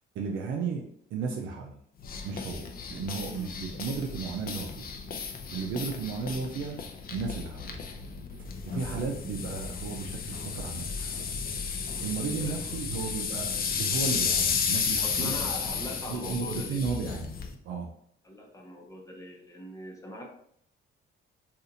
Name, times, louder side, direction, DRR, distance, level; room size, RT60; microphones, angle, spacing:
voice 1, 0.1-0.8 1.1-1.8 2.2-4.9 5.5-6.8 7.1-7.8 8.4-11.2 11.7-15.3 16.1-17.3 17.6-17.9, right 5 dB, 80° right, 1 dB, 0.5 m, -34 dB
sound 1, 2.0-17.5, left 6 dB, 45° left, 0.5 m, -33 dB
voice 2, 12.4-12.8 15.0-16.8 18.2-20.3, left 1 dB, 15° left, 0 dB, 0.9 m, -41 dB
2.7 x 2.5 x 3.8 m, 0.67 s
cardioid pair, 90°, 20 cm